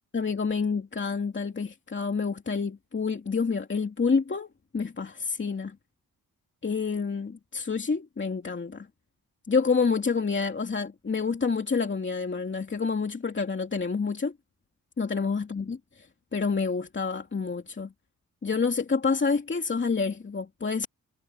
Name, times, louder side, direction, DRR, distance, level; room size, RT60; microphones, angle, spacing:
voice 1, 0.1-4.5 4.7-5.8 6.6-8.9 9.5-14.3 15.0-17.9 18.4-20.9, left 5 dB, 35° left, 2.8 m, -28 dB
cardioid pair, 85°, 34 cm